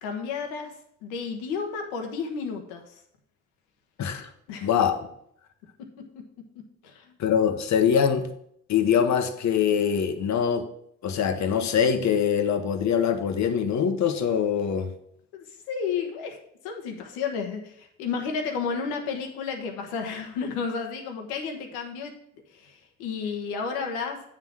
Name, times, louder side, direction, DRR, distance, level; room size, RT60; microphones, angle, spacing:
voice 1, 0.0-3.0 4.5-4.7 6.8-7.2 15.3-22.1 22.5-24.2, left 5 dB, 90° left, 1.2 m, -32 dB
voice 2, 4.0-4.3 4.6-5.0 7.2-8.3 8.7-10.7 11.0-14.9, left 7 dB, 60° left, 1.0 m, -23 dB
8.7 x 3.8 x 6.2 m
supercardioid pair, 60°, 32 cm